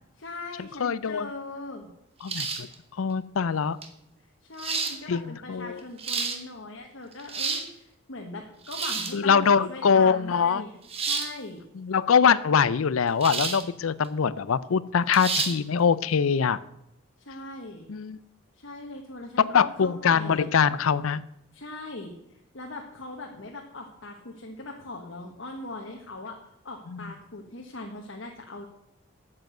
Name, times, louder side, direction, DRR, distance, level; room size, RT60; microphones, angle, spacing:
voice 1, 0.2-1.9 4.4-11.6 17.2-17.9 18.5-20.5 21.5-22.2 22.5-26.4 26.6-28.7, left 2 dB, 65° left, 2 dB, 1.3 m, -40 dB
voice 2, 0.8-1.3 2.2-2.7 3.0-3.8 5.1-5.8 9.1-10.6 11.8-16.6 17.9-18.2 19.4-21.2 26.9-27.1, left 6 dB, 85° left, 18 dB, 0.5 m, -23 dB
sound 1, 2.3-2.7 3.8-3.9 4.6-5.0 5.8-6.4 7.1-7.7 8.6-9.2 10.9-11.3 13.2-13.6 14.0-14.1 15.1-15.5, right 5 dB, 30° right, 1.2 m, -29 dB
9.2 x 7.6 x 7.8 m, 0.83 s
head